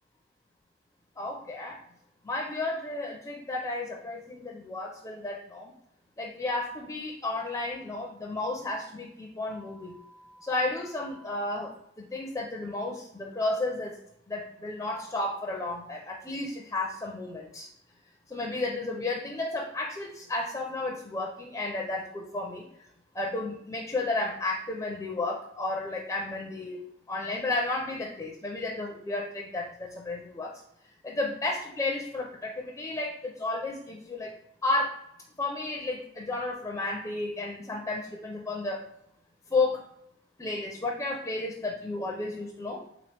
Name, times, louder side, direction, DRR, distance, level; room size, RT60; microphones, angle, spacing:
voice 1, 1.2-1.8 2.2-5.7 6.2-10.0 10.4-14.0 14.3-17.7 18.3-22.7 23.1-30.5 31.0-34.3 34.6-35.0 35.4-38.9 39.5-39.8 40.4-42.8, left 2 dB, 15° left, -1 dB, 0.4 m, -32 dB
sound 1, 9.5-11.5, equal, 80° left, 0.5 m, -54 dB
3.4 x 3.0 x 3.2 m, 0.73 s
head